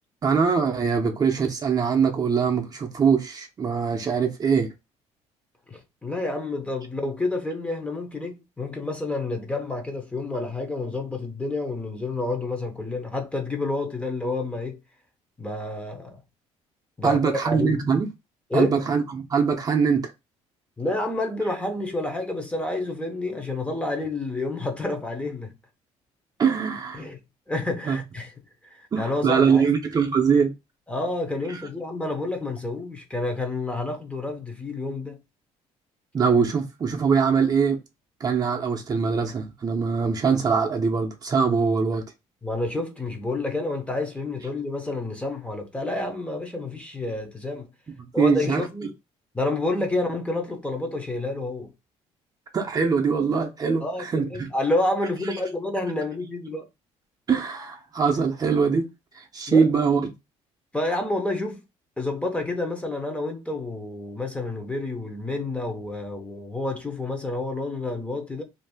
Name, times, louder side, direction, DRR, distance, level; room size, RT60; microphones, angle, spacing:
voice 1, 0.2-4.7 17.0-18.1 18.5-20.1 26.4-27.1 27.8-28.0 28.9-30.5 31.5-31.6 36.1-37.8 38.2-42.0 48.0-48.6 52.5-54.5 57.3-58.9 59.1-60.1, right 5 dB, 30° right, 0.6 m, -22 dB
voice 2, 5.7-14.8 15.4-16.2 17.0-17.8 18.5-18.8 20.8-25.5 26.9-27.2 27.5-28.3 28.6-29.7 30.9-35.2 42.4-47.7 48.1-48.9 49.3-51.7 53.8-56.6 59.5-59.7 60.7-61.6 62.0-68.4, left 2 dB, 10° left, 0.7 m, -29 dB
2.6 x 2.4 x 3.4 m
cardioid pair, 105°, 12 cm